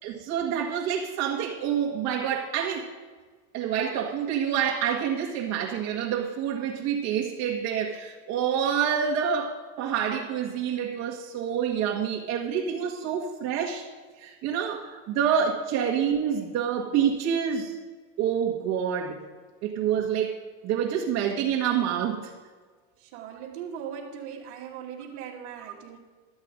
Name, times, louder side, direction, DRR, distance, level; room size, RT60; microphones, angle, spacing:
voice 1, 0.0-2.9 3.5-13.8 14.2-17.8 18.2-19.2 19.6-20.4 20.6-22.3, right 8 dB, 55° right, -2 dB, 1.7 m, -27 dB
voice 2, 23.0-26.0, right 8 dB, 75° right, -6 dB, 2.0 m, -39 dB
13.5 x 8.1 x 5.2 m, 1.5 s
supercardioid pair, 125°, 33 cm